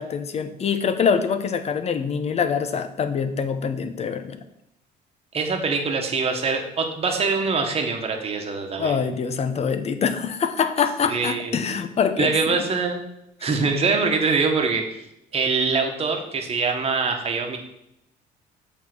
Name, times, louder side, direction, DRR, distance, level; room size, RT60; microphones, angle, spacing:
voice 1, 0.0-4.4 8.8-12.6, left 6 dB, 40° left, 9 dB, 0.8 m, -24 dB
voice 2, 5.3-9.0 11.1-11.8 12.2-13.0 13.4-15.0 15.3-17.6, right 4 dB, 35° right, 3 dB, 1.3 m, -24 dB
7.4 x 3.7 x 6.0 m, 0.80 s
cardioid pair, 110°, 17 cm